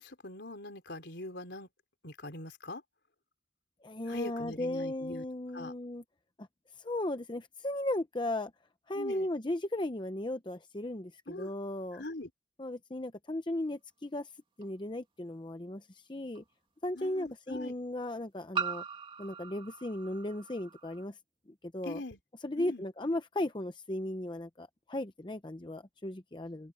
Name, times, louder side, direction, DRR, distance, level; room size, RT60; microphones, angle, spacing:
voice 1, 0.0-1.7 2.0-2.8 4.1-5.2 5.5-5.7 8.9-9.3 11.3-11.5 11.9-12.3 16.9-17.7 21.8-22.2 22.6-22.8, left 2 dB, 65° left, 4.1 m, -42 dB
voice 2, 3.8-6.0 6.4-6.5 6.8-8.5 8.9-12.0 12.6-14.3 14.6-16.4 16.8-18.8 19.2-21.2 21.7-22.0 22.4-26.7, left 1 dB, 25° left, 0.8 m, -36 dB
sound 1, 14.6-14.7 16.3-16.4 18.5-21.0, right 6 dB, 30° right, 2.5 m, -39 dB
open air
head